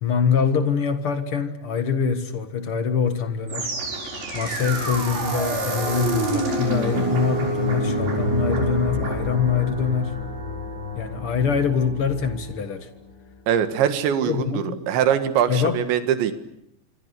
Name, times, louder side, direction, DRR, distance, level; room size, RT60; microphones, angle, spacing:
voice 1, 0.0-3.7 4.3-10.2 10.9-12.9 14.3-14.8 15.5-15.8, left 6 dB, 65° left, 9 dB, 1.3 m, -24 dB
sound 1, 3.5-12.6, right 1 dB, 55° right, 7.9 m, -27 dB
voice 2, 13.5-16.3, right 9 dB, 85° right, 9 dB, 4.1 m, -22 dB
26.0 x 26.0 x 8.3 m, 0.79 s
omnidirectional pair, 5.0 m